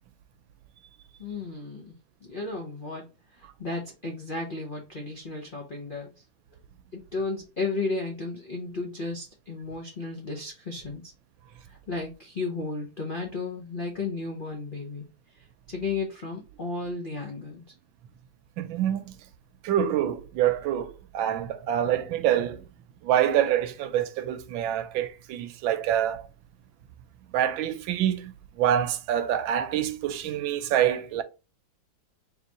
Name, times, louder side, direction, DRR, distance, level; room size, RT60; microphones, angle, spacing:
voice 1, 1.2-1.9 2.3-3.0 3.4-6.1 6.9-11.0 11.7-15.1 15.7-17.6, left 3 dB, 65° left, 0.5 m, -33 dB
voice 2, 18.6-19.1 19.6-22.6 23.0-26.2 27.3-31.2, right 10 dB, 80° right, 1.3 m, -26 dB
4.0 x 2.9 x 3.9 m
omnidirectional pair, 2.2 m